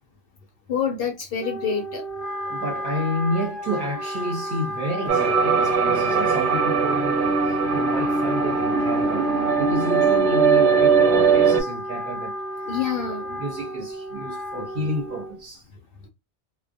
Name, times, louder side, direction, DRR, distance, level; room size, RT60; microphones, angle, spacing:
voice 1, 0.7-2.0 12.7-13.3, left 7 dB, 65° left, 0.7 m, -27 dB
Wind instrument woodwind instrument, 1.4-15.4, equal, ahead, 0.9 m, -32 dB
voice 2, 2.5-12.8 13.1-15.6, equal, 55° right, 1.1 m, -30 dB
sound 1, 5.1-11.6, right 5 dB, 90° right, 0.9 m, -20 dB
2.2 x 2.2 x 2.5 m
omnidirectional pair, 1.1 m